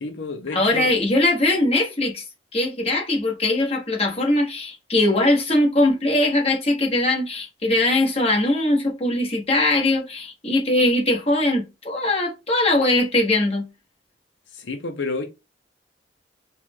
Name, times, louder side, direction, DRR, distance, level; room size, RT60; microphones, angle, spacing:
voice 1, 0.0-0.9 14.6-15.2, left 3 dB, 85° left, 0.7 m, -29 dB
voice 2, 0.5-2.2 2.5-13.6, left 1 dB, 35° left, 1.6 m, -21 dB
4.6 x 2.4 x 3.6 m
head